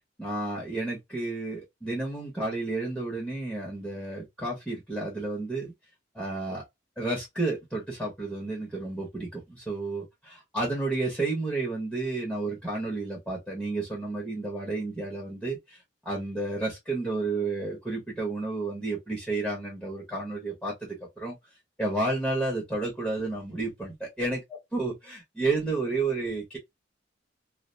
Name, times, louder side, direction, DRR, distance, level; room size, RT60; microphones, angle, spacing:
voice 1, 0.2-5.7 6.1-6.6 7.0-21.4 21.8-24.4 24.7-26.6, right 2 dB, 5° left, 0.8 m, -31 dB
2.4 x 2.1 x 2.5 m
head